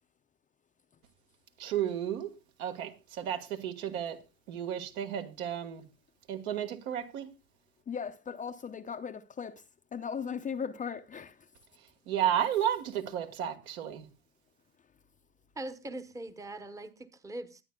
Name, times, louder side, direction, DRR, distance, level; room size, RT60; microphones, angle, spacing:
voice 1, 1.6-2.3 2.6-4.2 4.5-5.9 6.3-7.3 12.1-14.1, right 10 dB, 65° right, 1.7 m, -32 dB
voice 2, 7.9-9.6 9.9-11.5, left 6 dB, 15° left, 0.6 m, -37 dB
voice 3, 15.6-17.6, right 1 dB, 5° right, 0.9 m, -41 dB
20.5 x 9.4 x 2.2 m
hypercardioid pair, 90°, 44 cm